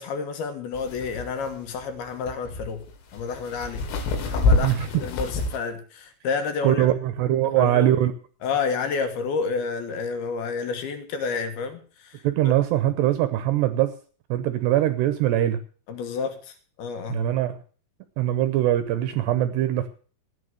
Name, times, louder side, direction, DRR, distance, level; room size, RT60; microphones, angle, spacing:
voice 1, 0.0-2.8 3.1-3.9 4.3-6.9 7.4-7.9 8.4-12.5 15.9-17.2, left 5 dB, 65° left, 8 dB, 2.9 m, -30 dB
sound 1, 0.8-5.6, left 2 dB, 90° left, 4.6 m, -26 dB
voice 2, 6.6-8.1 12.2-13.9 14.3-15.6 17.1-17.6 18.2-19.9, right 13 dB, 80° right, 11 dB, 2.6 m, -22 dB
15.0 x 9.5 x 6.6 m, 0.41 s
omnidirectional pair, 5.7 m